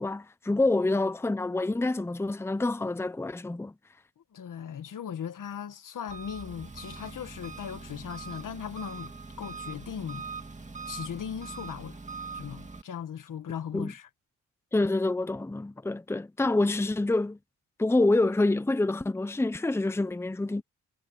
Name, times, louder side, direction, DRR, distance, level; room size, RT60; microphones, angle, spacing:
voice 1, 0.0-3.7 13.7-13.9 14.7-17.4 17.8-20.6, left 2 dB, 10° left, 0.7 m, -27 dB
voice 2, 4.2-9.1 9.4-10.3 10.8-12.0 12.3-14.1, left 8 dB, 75° left, 1.4 m, -38 dB
Engine, 6.1-12.8, right 4 dB, 20° right, 2.3 m, -42 dB
wide cardioid pair, 110°, 32 cm